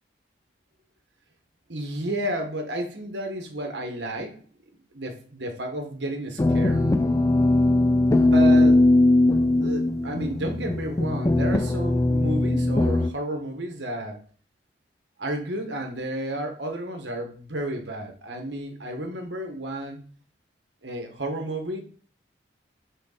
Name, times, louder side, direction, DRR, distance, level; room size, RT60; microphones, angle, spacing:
voice 1, 1.7-4.4 4.9-6.8 8.2-8.9 9.6-14.2 15.2-20.0 20.8-21.8, right 1 dB, 70° right, 4 dB, 1.5 m, -32 dB
sound 1, 6.4-13.1, left 2 dB, 15° left, 0.3 m, -20 dB
8.2 x 4.0 x 4.0 m, 0.41 s
head